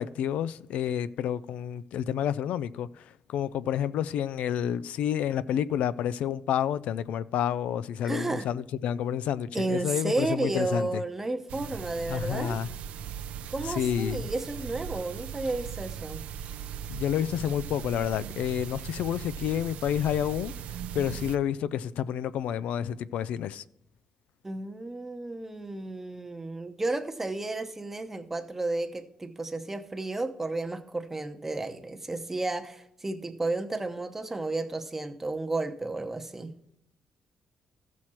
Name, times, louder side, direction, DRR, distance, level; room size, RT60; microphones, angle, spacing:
voice 1, 0.0-11.0 12.1-12.7 13.6-14.3 16.9-23.6, left 9 dB, 85° left, 0.3 m, -29 dB
voice 2, 8.0-8.5 9.5-12.6 13.5-16.2 24.4-36.5, right 2 dB, 15° right, 0.8 m, -32 dB
sound 1, 11.5-21.4, right 9 dB, 90° right, 0.5 m, -39 dB
14.5 x 6.2 x 4.3 m
cardioid pair, 120°, 2 cm